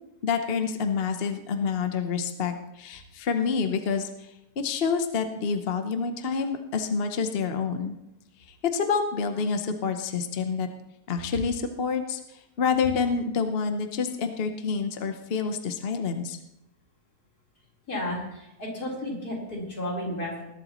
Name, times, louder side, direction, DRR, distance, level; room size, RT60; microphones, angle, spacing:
voice 1, 0.2-4.3 4.6-7.9 8.7-10.7 11.1-12.2 12.6-16.4, left 5 dB, 45° left, 6 dB, 1.0 m, -28 dB
voice 2, 17.9-20.5, left 1 dB, 85° left, -4 dB, 4.7 m, -33 dB
20.0 x 12.0 x 3.1 m, 0.87 s
omnidirectional pair, 1.6 m